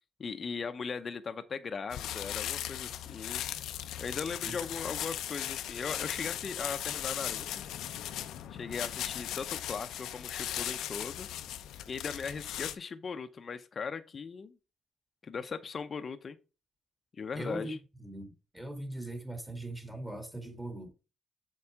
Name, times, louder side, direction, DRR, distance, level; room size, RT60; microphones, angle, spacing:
voice 1, 0.2-3.4 4.0-7.5 8.5-11.3 11.9-14.6 15.2-16.4 17.1-17.8, left 5 dB, 40° left, 0.7 m, -38 dB
sound 1, 1.9-12.7, left 11 dB, 85° left, 0.6 m, -38 dB
voice 2, 17.3-20.9, right 1 dB, 10° right, 2.1 m, -40 dB
7.0 x 4.7 x 4.8 m
cardioid pair, 90°, 0 cm